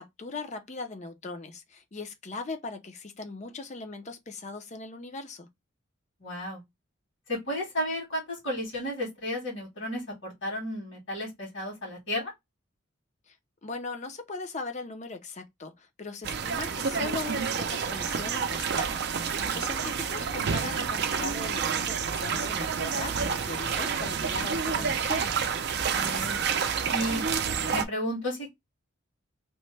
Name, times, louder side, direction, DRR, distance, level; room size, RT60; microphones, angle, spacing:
voice 1, 0.0-5.5 13.3-13.4 13.6-25.4, left 3 dB, 35° left, 0.5 m, -39 dB
voice 2, 6.2-6.6 7.3-12.3 19.4-19.6 25.9-26.4 26.9-27.3 27.7-28.5, equal, 65° left, 1.8 m, -33 dB
sound 1, 16.2-27.8, right 6 dB, 55° right, 0.5 m, -29 dB
3.0 x 2.1 x 3.1 m
head